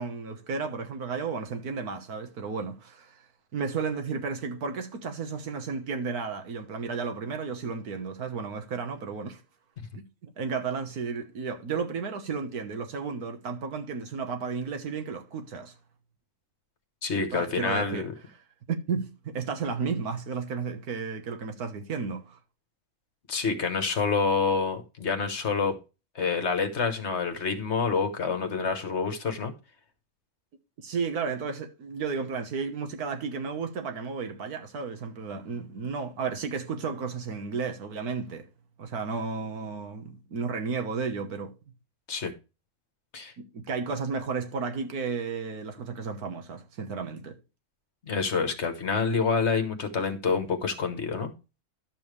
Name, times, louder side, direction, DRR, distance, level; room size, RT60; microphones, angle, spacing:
voice 1, 0.0-3.2 3.5-9.4 9.9-15.7 17.3-18.1 18.7-22.4 30.8-38.5 38.8-41.5 43.4-47.4, right 5 dB, 85° right, 1.7 m, -33 dB
voice 2, 17.0-18.1 23.3-25.8 26.1-29.5 42.1-42.3 43.1-43.3 48.0-51.3, left 5 dB, 50° left, 1.5 m, -27 dB
11.0 x 7.1 x 3.2 m
omnidirectional pair, 1.6 m